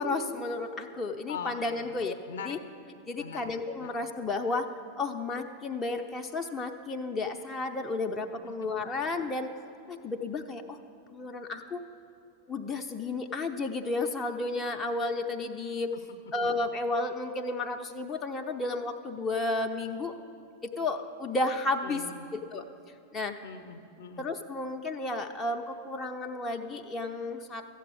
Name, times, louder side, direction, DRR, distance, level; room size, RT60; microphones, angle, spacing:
voice 1, 0.0-2.2 2.4-2.6 3.1-4.7 5.0-9.5 9.9-10.8 11.1-11.8 12.5-15.9 16.3-20.1 20.6-22.0 22.3-22.6 23.1-23.4 24.2-27.7, left 2 dB, 20° left, 3 dB, 0.7 m, -32 dB
voice 2, 1.3-2.6 3.2-3.5 3.8-3.9 8.4-8.7 15.9-16.2 21.8-22.3 23.4-24.3, left 6 dB, 60° left, 8 dB, 0.8 m, -42 dB
13.5 x 7.8 x 8.5 m, 2.6 s
figure-of-eight pair, 90°, 0 cm